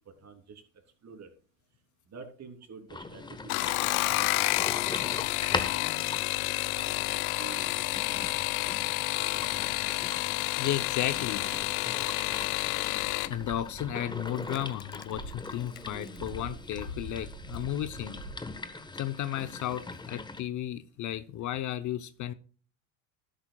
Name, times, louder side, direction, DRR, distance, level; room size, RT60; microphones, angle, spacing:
voice 1, 0.2-0.6 1.0-1.3 2.1-7.0 7.3-7.9, right 5 dB, 40° right, 3.3 m, -49 dB
sound 1, 2.9-20.4, left 3 dB, 10° left, 1.2 m, -41 dB
sound 2, 3.4-13.3 14.5-15.0 15.5-15.9 16.2-16.3, left 20 dB, 85° left, 0.6 m, -30 dB
voice 2, 10.6-11.4 13.3-18.2 19.0-22.3, left 12 dB, 45° left, 0.8 m, -34 dB
sound 3, 11.6-11.8 12.4-14.6 15.1-19.0, right 1 dB, 80° right, 5.7 m, -44 dB
12.0 x 11.5 x 2.3 m
supercardioid pair, 100°, 41 cm